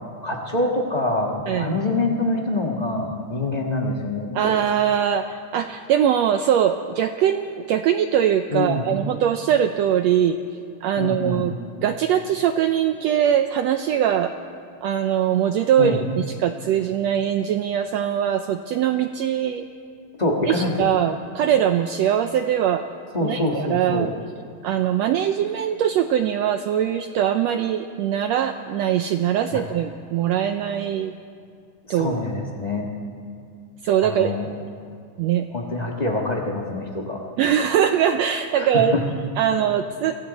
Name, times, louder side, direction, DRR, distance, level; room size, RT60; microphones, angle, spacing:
voice 1, 0.2-4.5 8.5-8.9 11.0-11.5 15.8-16.0 20.2-20.9 23.1-24.1 29.5-29.6 31.9-32.9 34.0-34.5 35.5-37.2 38.5-39.0, left 2 dB, 70° left, -1 dB, 0.4 m, -25 dB
voice 2, 4.3-5.3 5.5-10.4 10.8-11.5 11.8-14.3 14.8-19.6 20.5-22.8 23.2-24.1 24.6-31.1 31.9-32.2 33.8-34.3 35.2-35.5 37.4-39.0 39.4-40.2, right 9 dB, 85° right, 7 dB, 1.5 m, -22 dB
29.5 x 23.0 x 4.1 m, 2.3 s
omnidirectional pair, 3.7 m